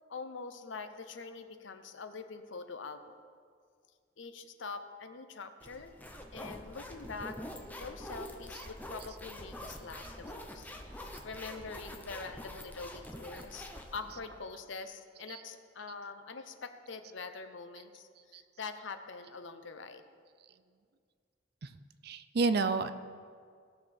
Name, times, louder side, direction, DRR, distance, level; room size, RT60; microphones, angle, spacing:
voice 1, 0.1-3.2 4.2-5.9 6.3-7.4 7.7-20.0, left 4 dB, 70° left, 9 dB, 0.7 m, -44 dB
sound 1, 5.6-14.4, left 1 dB, 10° left, 0.7 m, -46 dB
voice 2, 22.0-22.9, right 3 dB, 55° right, 11 dB, 0.5 m, -30 dB
17.5 x 6.6 x 4.4 m, 2.1 s
head